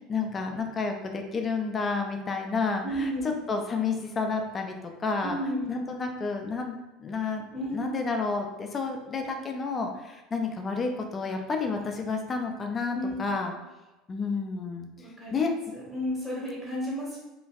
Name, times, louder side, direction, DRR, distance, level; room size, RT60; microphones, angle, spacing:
voice 1, 0.1-3.1 3.5-4.7 5.0-5.4 5.7-7.4 7.7-13.5 14.1-14.9 15.3-15.5, left 4 dB, 30° left, 4 dB, 0.4 m, -30 dB
voice 2, 2.8-3.3 5.2-5.6 7.5-7.9 12.9-13.2 13.5-13.6 15.0-15.3 15.7-17.2, equal, 10° right, -6 dB, 1.4 m, -32 dB
2.9 x 2.5 x 2.4 m, 1.1 s
hypercardioid pair, 75°, 0 cm